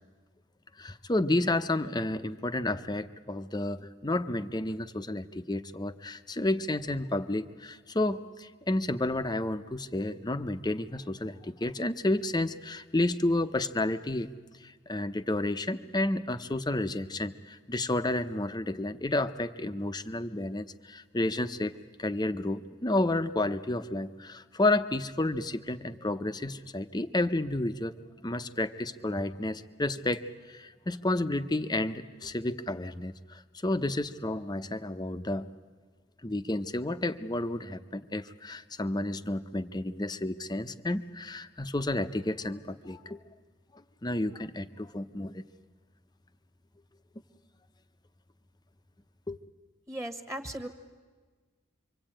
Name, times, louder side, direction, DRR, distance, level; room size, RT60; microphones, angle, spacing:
voice 1, 0.8-14.3 14.6-21.7 22.0-27.9 28.2-35.5 36.2-43.2 44.0-45.4 49.3-49.4, left 2 dB, 20° left, 10 dB, 0.7 m, -31 dB
voice 2, 49.9-50.7, right 1 dB, 15° right, 9 dB, 1.4 m, -37 dB
27.0 x 24.5 x 8.9 m, 1.4 s
head